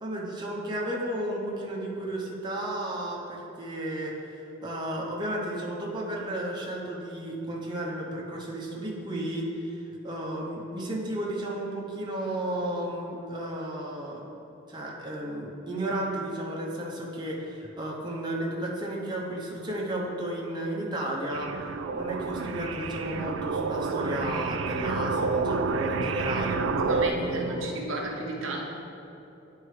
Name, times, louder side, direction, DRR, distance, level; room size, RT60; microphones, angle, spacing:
voice 1, 0.0-14.2 14.7-21.5 21.9-27.9, right 1 dB, 20° right, -3 dB, 0.8 m, -33 dB
sound 1, 21.3-27.1, right 4 dB, 70° right, 0.4 m, -29 dB
voice 2, 26.8-28.6, right 2 dB, 85° right, -1 dB, 0.9 m, -34 dB
9.7 x 4.4 x 3.2 m, 3.0 s
head